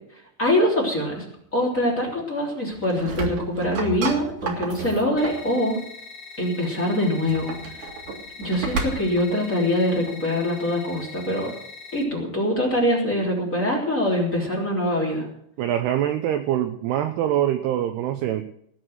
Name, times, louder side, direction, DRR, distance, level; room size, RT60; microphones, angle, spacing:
voice 1, 0.4-1.2 1.5-5.8 6.4-7.5 8.4-11.5 11.9-15.3, left 1 dB, 20° left, -3 dB, 3.1 m, -23 dB
sound 1, 2.7-5.5 7.1-9.3, right 3 dB, 50° right, 2.9 m, -32 dB
sound 2, 5.2-12.0, left 4 dB, 40° left, 3.3 m, -42 dB
voice 2, 15.6-18.4, right 11 dB, 80° right, 7 dB, 2.5 m, -24 dB
19.0 x 6.4 x 7.8 m, 0.71 s
omnidirectional pair, 5.3 m